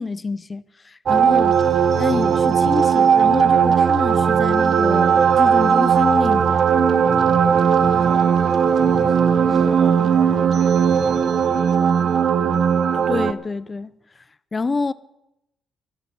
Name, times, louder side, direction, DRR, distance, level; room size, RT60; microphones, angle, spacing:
voice 1, 0.0-1.6 2.0-6.7 12.9-13.9 14.5-14.9, left 4 dB, 35° left, 0.6 m, -27 dB
sound 1, 1.1-13.3, right 7 dB, 60° right, 0.7 m, -17 dB
voice 2, 7.0-8.4 8.7-11.1, equal, 5° right, 5.3 m, -37 dB
17.0 x 12.0 x 5.4 m
cardioid pair, 70°, 0 cm